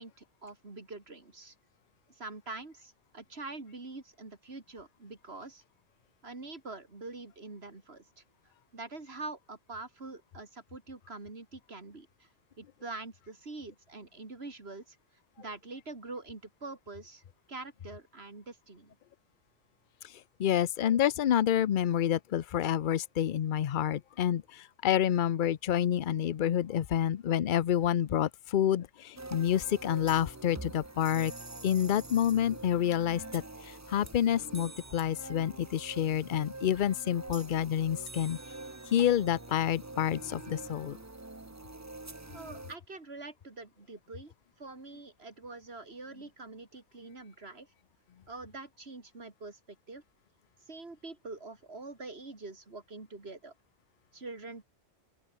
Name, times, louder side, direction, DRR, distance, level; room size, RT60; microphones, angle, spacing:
voice 1, 0.0-1.5 2.2-5.6 6.2-8.2 8.7-12.3 12.6-15.0 15.4-17.2 17.5-19.0 42.3-44.3 44.6-47.7 48.3-50.0 50.7-53.5 54.1-54.6, right 3 dB, 55° right, 3.5 m, -45 dB
voice 2, 20.4-31.3 31.6-38.4 38.9-41.0, left 10 dB, 50° left, 0.7 m, -28 dB
sound 1, 29.2-42.8, right 2 dB, 15° right, 0.9 m, -45 dB
open air
omnidirectional pair, 1.2 m